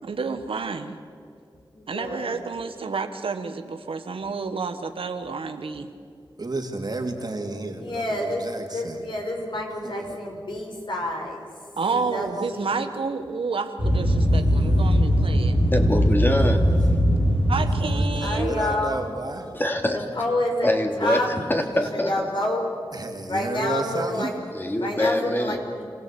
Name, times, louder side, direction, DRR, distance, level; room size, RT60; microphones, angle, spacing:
voice 1, 0.0-1.0 1.9-5.9 11.8-15.6 17.5-18.6, right 4 dB, 85° right, 7 dB, 1.4 m, -30 dB
voice 2, 1.7-2.4 7.8-11.4 12.1-12.7 18.2-19.1 19.3-19.5 19.9-20.7 21.0-21.3 21.7-22.6 23.3-24.3 24.8-25.8, left 1 dB, 60° left, 1 dB, 5.5 m, -28 dB
voice 3, 6.4-9.0 9.8-10.2 11.8-12.3 14.3-14.8 16.5-16.6 17.5-19.5 22.9-24.3, right 2 dB, 50° right, 2 dB, 3.2 m, -32 dB
sound 1, 13.8-18.4, equal, 85° left, 4.6 m, -20 dB
voice 4, 15.7-16.6 19.5-20.0 20.6-22.3 24.5-25.6, left 1 dB, 20° left, 3 dB, 3.0 m, -24 dB
26.5 x 17.0 x 8.6 m, 2.3 s
cardioid pair, 45°, 9 cm